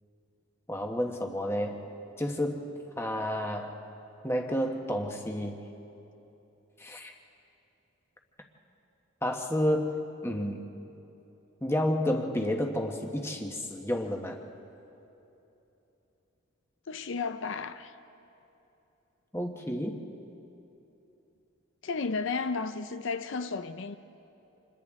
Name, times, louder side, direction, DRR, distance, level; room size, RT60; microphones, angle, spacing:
voice 1, 0.7-1.8 2.2-2.6 3.0-3.7 4.2-5.6 6.8-7.1 9.2-9.9 10.2-10.6 11.6-14.4 19.3-20.0, left 1 dB, 10° left, 1.2 m, -30 dB
voice 2, 16.9-17.9 21.8-24.0, left 4 dB, 65° left, 0.5 m, -33 dB
30.0 x 27.5 x 3.7 m
head